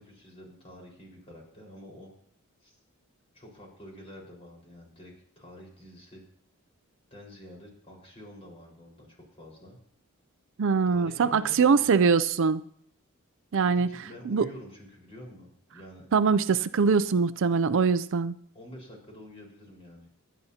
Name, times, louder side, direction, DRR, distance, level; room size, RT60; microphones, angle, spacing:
voice 1, 0.0-2.1 2.6-2.8 3.3-6.2 7.1-9.8 10.9-11.9 13.6-16.1 18.5-20.2, equal, 25° left, -1 dB, 4.8 m, -48 dB
voice 2, 10.6-12.6 13.5-13.9 14.3-14.5 16.1-18.4, right 5 dB, 60° right, 14 dB, 0.4 m, -23 dB
27.0 x 10.0 x 2.9 m, 0.62 s
head